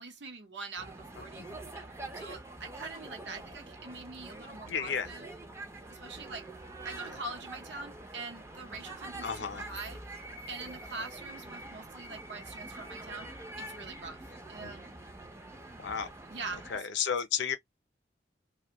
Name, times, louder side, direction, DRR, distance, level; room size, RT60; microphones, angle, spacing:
voice 1, 0.0-5.3 5.9-6.5 6.8-10.0 10.5-13.3 13.6-14.9 16.3-16.7, right 3 dB, 75° right, 0.9 m, -44 dB
sound 1, 0.8-16.8, right 2 dB, 15° right, 0.4 m, -45 dB
voice 2, 4.7-5.1 7.0-7.2 9.2-9.6 14.6-14.7 15.8-16.1 16.7-17.6, left 7 dB, 70° left, 0.5 m, -33 dB
2.5 x 2.2 x 2.8 m
head